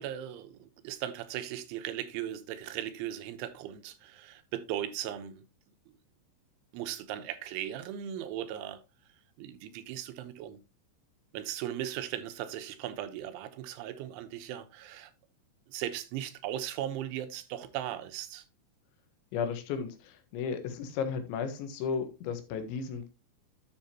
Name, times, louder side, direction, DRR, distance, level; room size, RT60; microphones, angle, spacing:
voice 1, 0.0-5.4 5.9-6.0 6.7-8.8 9.4-10.6 11.3-15.1 15.7-18.5, right 11 dB, 90° right, 3.4 m, -38 dB
voice 2, 19.3-23.1, left 6 dB, 80° left, 3.6 m, -34 dB
10.5 x 7.3 x 2.9 m
omnidirectional pair, 5.3 m